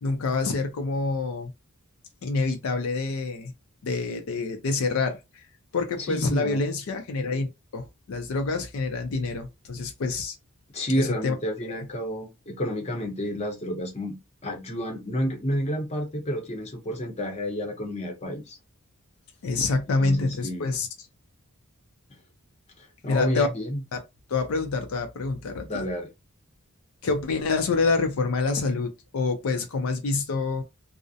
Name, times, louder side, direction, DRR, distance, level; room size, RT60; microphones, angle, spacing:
voice 1, 0.0-1.5 2.2-3.5 3.8-5.4 5.7-10.4 11.0-11.3 11.6-11.8 19.4-20.9 23.1-23.5 23.9-24.0 24.3-25.8 27.0-30.6, left 3 dB, 70° left, 0.4 m, -27 dB
voice 2, 6.1-6.6 10.7-18.6 20.0-20.7 22.8-23.8 25.7-26.1, equal, 30° left, 0.7 m, -30 dB
2.4 x 2.0 x 2.6 m
head